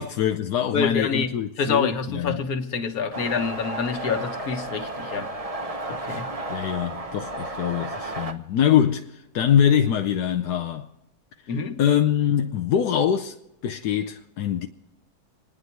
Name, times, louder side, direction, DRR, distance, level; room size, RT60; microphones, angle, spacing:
voice 1, 0.0-2.4 6.5-10.9 11.8-13.4 13.6-14.7, left 9 dB, 85° left, 1.3 m, -23 dB
voice 2, 0.7-5.3 5.9-6.3 11.5-11.8, left 5 dB, 65° left, 1.7 m, -27 dB
sound 1, 3.1-8.3, right 2 dB, 25° right, 1.0 m, -33 dB
27.5 x 9.8 x 4.6 m
omnidirectional pair, 1.7 m